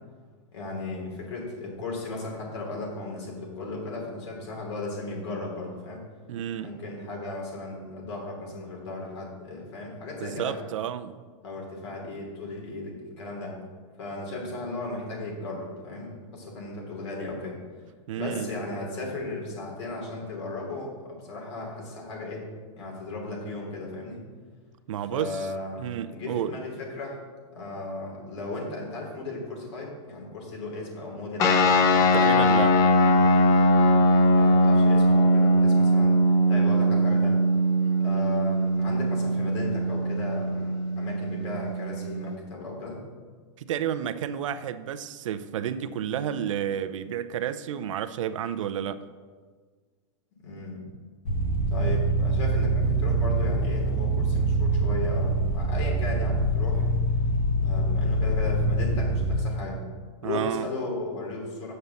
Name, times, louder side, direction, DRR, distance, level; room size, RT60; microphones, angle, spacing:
voice 1, 0.5-6.1 6.6-10.6 11.4-13.6 14.0-17.6 18.1-22.5 22.8-24.2 25.1-25.8 26.1-27.2 27.5-31.8 34.3-36.2 36.5-37.4 38.0-43.0 50.4-50.8 51.7-56.9 57.6-59.8 60.2-61.7, left 2 dB, 60° left, 3.1 m, -36 dB
voice 2, 6.3-6.7 10.2-11.2 18.1-18.5 24.9-25.5 25.8-26.5 32.1-32.8 43.6-49.0 60.2-60.7, right 9 dB, 80° right, 0.6 m, -31 dB
sound 1, 31.4-42.3, equal, 20° left, 0.5 m, -21 dB
sound 2, 51.3-59.3, right 2 dB, 40° left, 2.0 m, -24 dB
7.7 x 5.4 x 7.0 m
supercardioid pair, 175°, 16 cm